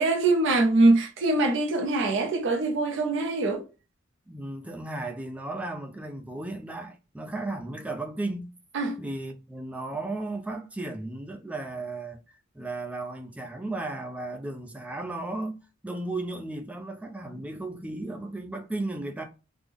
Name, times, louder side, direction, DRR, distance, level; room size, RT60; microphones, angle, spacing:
voice 1, 0.0-3.6 8.7-9.0, right 2 dB, 60° right, 0.5 m, -23 dB
voice 2, 4.3-8.5 9.0-12.2 12.5-15.6 15.8-19.2, right 2 dB, 5° right, 0.4 m, -35 dB
3.4 x 2.0 x 3.4 m
head